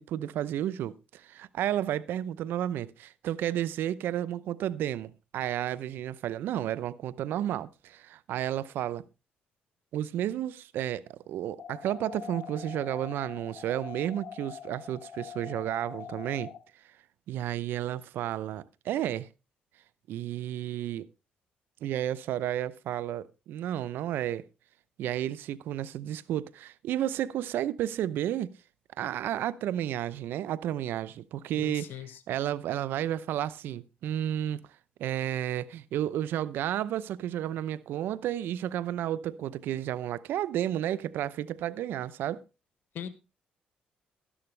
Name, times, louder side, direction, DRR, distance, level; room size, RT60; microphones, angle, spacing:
voice 1, 0.0-9.0 9.9-16.5 17.3-19.3 20.1-21.1 21.8-24.4 25.0-28.5 29.0-34.6 35.0-42.4, right 11 dB, 80° right, 0.7 m, -32 dB
sound 1, 11.6-16.6, left 8 dB, 55° left, 4.1 m, -43 dB
voice 2, 31.5-32.2 42.9-43.1, left 9 dB, 70° left, 1.1 m, -40 dB
12.5 x 11.0 x 3.3 m
supercardioid pair, 70°, 4 cm